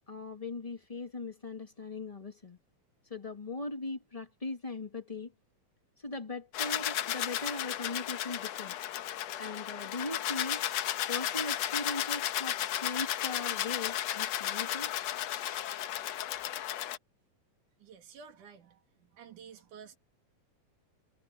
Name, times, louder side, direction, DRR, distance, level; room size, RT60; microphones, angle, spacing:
voice 1, 0.1-2.6 3.1-5.3 6.0-8.7 9.4-10.6 11.1-14.9, left 3 dB, 30° left, 0.6 m, -39 dB
sound 1, 6.5-17.0, left 12 dB, 70° left, 1.9 m, -34 dB
voice 2, 17.8-20.0, right 6 dB, 75° right, 3.9 m, -52 dB
omnidirectional pair, 3.6 m